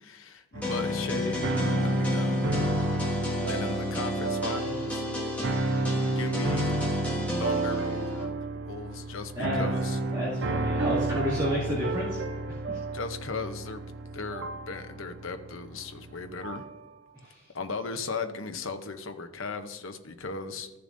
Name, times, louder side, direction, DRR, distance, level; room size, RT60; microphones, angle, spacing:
voice 1, 0.0-2.4 3.5-5.1 6.2-6.8 7.4-10.0 12.9-13.8 14.1-16.6 17.5-20.7, left 4 dB, 65° left, 7 dB, 0.8 m, -37 dB
sound 1, 0.5-16.8, right 2 dB, 55° right, 0.6 m, -31 dB
sound 2, 0.6-8.2, left 1 dB, 5° left, 1.7 m, -32 dB
voice 2, 10.1-12.2 12.5-12.8 17.1-17.4, equal, 20° right, -10 dB, 2.3 m, -31 dB
14.5 x 6.8 x 2.6 m, 1.1 s
head